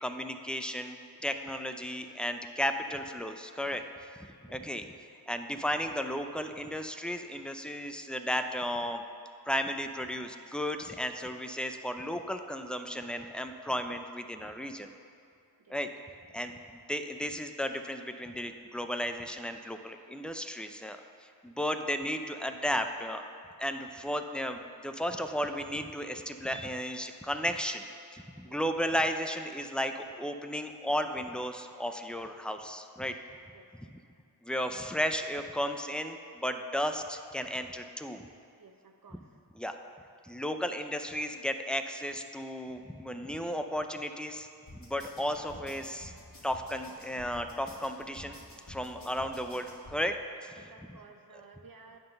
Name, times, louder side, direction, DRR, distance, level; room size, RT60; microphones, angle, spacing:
voice 1, 0.0-1.0 1.2-4.9 5.3-9.0 9.5-14.9 15.7-15.9 16.3-21.0 21.4-23.3 23.6-33.1 34.4-38.3 39.6-39.8 40.2-44.5 44.7-46.1 46.4-48.4 48.7-50.2 50.4-50.5, equal, 5° left, 6 dB, 0.4 m, -34 dB
voice 2, 38.6-39.4 48.9-49.1 50.5-52.0, right 4 dB, 60° right, 5 dB, 0.7 m, -55 dB
sound 1, 44.7-50.0, left 1 dB, 60° left, 1.9 m, -50 dB
9.3 x 3.8 x 6.5 m, 2.4 s
wide cardioid pair, 40°, 38 cm